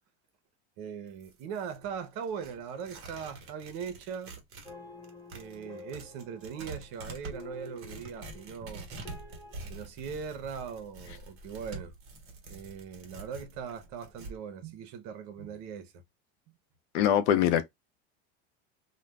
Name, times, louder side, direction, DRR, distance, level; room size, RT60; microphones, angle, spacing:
voice 1, 0.8-4.3 5.3-8.9 9.7-11.9 12.5-16.0, right 7 dB, 60° right, 0.8 m, -40 dB
Tearing, 1.1-4.7 5.0-14.4, right 3 dB, 40° right, 1.1 m, -46 dB
sound 1, 4.6-9.7, left 4 dB, 10° left, 1.1 m, -50 dB
voice 2, 16.9-17.6, left 10 dB, 70° left, 0.7 m, -23 dB
2.5 x 2.2 x 3.1 m
supercardioid pair, 130°, 34 cm